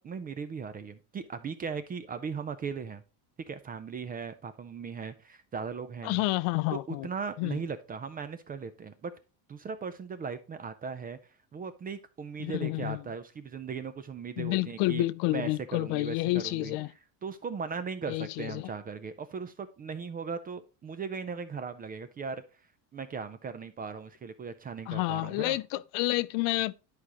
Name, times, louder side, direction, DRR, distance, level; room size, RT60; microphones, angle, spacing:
voice 1, 0.0-3.0 3.5-6.2 6.7-9.1 9.5-11.2 11.5-16.8 17.2-22.4 22.9-25.6, right 5 dB, 20° right, 0.4 m, -38 dB
voice 2, 6.0-7.1 7.4-7.6 12.4-13.0 14.4-16.9 18.1-18.7 24.9-26.8, left 20 dB, 70° left, 0.5 m, -29 dB
10.5 x 4.9 x 2.9 m
cardioid pair, 140°, 43 cm